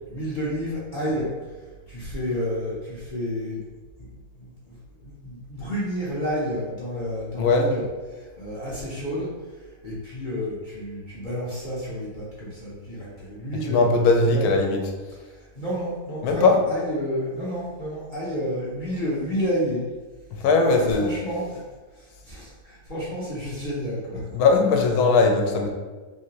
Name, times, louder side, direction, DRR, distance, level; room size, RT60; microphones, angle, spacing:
voice 1, 0.1-1.3 1.9-3.7 4.0-4.1 4.4-7.9 8.1-14.4 15.4-19.8 20.8-21.6 22.0-24.2, equal, 45° left, -8 dB, 0.6 m, -30 dB
voice 2, 13.7-14.8 16.2-16.6 20.4-21.2 24.3-25.7, left 3 dB, 80° left, 2 dB, 1.1 m, -19 dB
3.3 x 2.7 x 2.8 m, 1.3 s
omnidirectional pair, 1.6 m